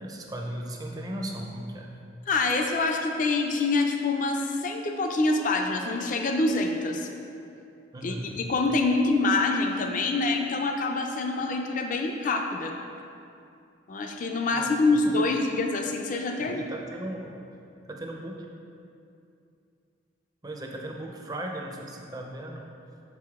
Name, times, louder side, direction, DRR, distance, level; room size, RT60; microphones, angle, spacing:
voice 1, 0.0-1.9 7.9-8.4 14.5-15.3 16.4-17.3 17.8-18.5 20.4-22.7, right 1 dB, 20° right, 1 dB, 0.5 m, -37 dB
voice 2, 2.3-7.1 8.0-12.7 13.9-16.6, left 3 dB, 40° left, 3 dB, 0.4 m, -26 dB
6.2 x 4.8 x 3.5 m, 2.6 s
head